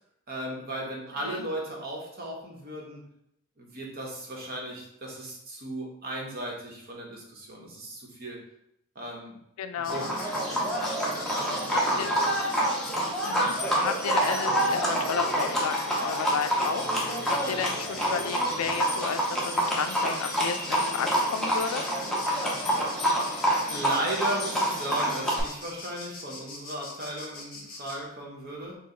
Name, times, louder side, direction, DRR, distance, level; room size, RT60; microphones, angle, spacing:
voice 1, 0.3-3.0 3.6-8.4 8.9-9.3 9.8-10.7 11.1-12.4 23.7-28.8, right 1 dB, 45° right, -1 dB, 0.9 m, -36 dB
voice 2, 9.6-10.1 11.7-12.1 13.2-21.8, left 7 dB, 80° left, 9 dB, 0.4 m, -33 dB
Insect, 9.8-28.0, left 3 dB, 40° left, 0.7 m, -43 dB
Livestock farm animals working animals, 9.9-25.4, equal, ahead, 0.7 m, -27 dB
4.5 x 2.1 x 3.8 m, 0.76 s
head